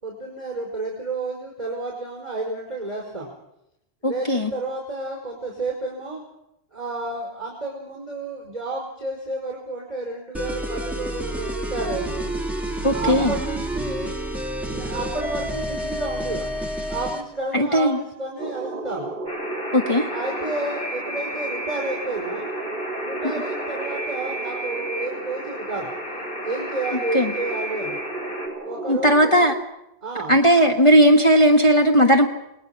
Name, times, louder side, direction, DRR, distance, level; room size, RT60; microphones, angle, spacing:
voice 1, 0.0-3.3 4.0-6.2 6.7-12.3 12.9-14.1 14.7-16.6 16.9-19.1 20.1-22.5 23.0-25.9 26.4-28.0 28.6-29.3 30.0-30.4, right 2 dB, 35° right, -1 dB, 5.1 m, -31 dB
voice 2, 4.0-4.5 12.8-13.3 17.5-18.0 19.7-20.1 27.1-27.3 28.9-29.5 30.3-32.3, equal, 30° left, 1 dB, 1.6 m, -17 dB
sound 1, 10.3-17.3, right 1 dB, ahead, 2.1 m, -29 dB
sound 2, 18.4-29.6, right 2 dB, 55° right, 1.3 m, -34 dB
Alarm, 19.3-28.5, equal, 70° left, 5.0 m, -33 dB
29.5 x 19.5 x 6.0 m, 0.84 s
omnidirectional pair, 1.0 m